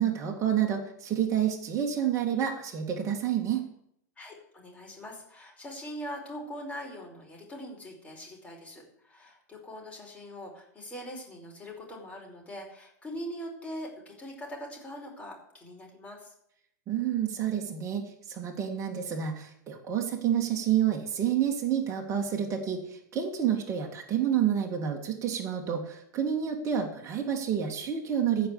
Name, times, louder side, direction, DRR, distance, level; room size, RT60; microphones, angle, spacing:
voice 1, 0.0-3.6 16.9-28.5, right 9 dB, 30° right, 1 dB, 2.0 m, -29 dB
voice 2, 4.2-16.3, equal, 15° left, -1 dB, 4.9 m, -42 dB
14.5 x 5.4 x 8.3 m, 0.73 s
hypercardioid pair, 100°, 10 cm